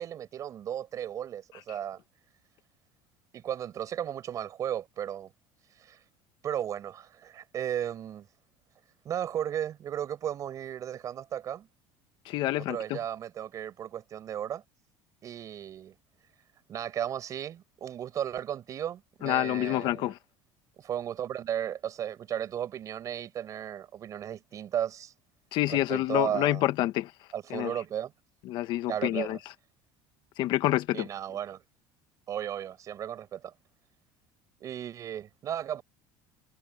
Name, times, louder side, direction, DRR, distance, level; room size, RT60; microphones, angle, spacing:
voice 1, 0.0-2.0 3.3-5.3 5.8-6.0 6.4-8.3 9.0-11.7 12.6-14.6 15.2-15.9 16.7-20.1 20.8-25.1 25.7-26.7 27.3-28.1 28.9-29.4 30.9-31.6 32.3-33.5 34.6-35.8, right 10 dB, 35° right, 5.3 m, -35 dB
voice 2, 12.3-13.0 19.2-20.2 25.5-27.1 27.5-27.7 28.5-29.4 30.4-31.1, left 15 dB, 50° left, 1.3 m, -27 dB
cardioid pair, 160°, 10 cm